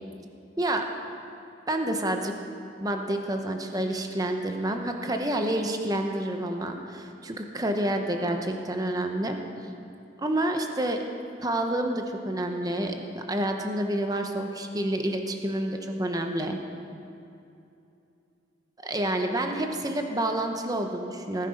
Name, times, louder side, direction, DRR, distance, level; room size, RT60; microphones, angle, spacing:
voice 1, 1.7-2.3 2.8-9.4 10.2-11.0 11.4-16.6 18.8-21.5, right 1 dB, 20° right, 4 dB, 0.9 m, -28 dB
18.0 x 11.0 x 5.2 m, 2.7 s
head